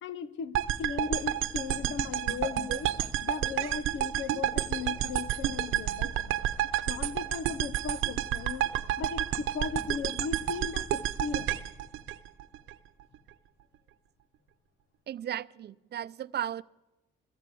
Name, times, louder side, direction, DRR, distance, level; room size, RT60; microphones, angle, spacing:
voice 1, 0.0-2.9 3.2-6.3 6.9-8.7 9.0-11.6, left 6 dB, 70° left, 1.1 m, -37 dB
sound 1, 0.5-12.7, right 12 dB, 90° right, 1.0 m, -30 dB
voice 2, 15.1-16.6, right 11 dB, 55° right, 0.6 m, -35 dB
22.5 x 17.0 x 8.5 m
cardioid pair, 90°, 20 cm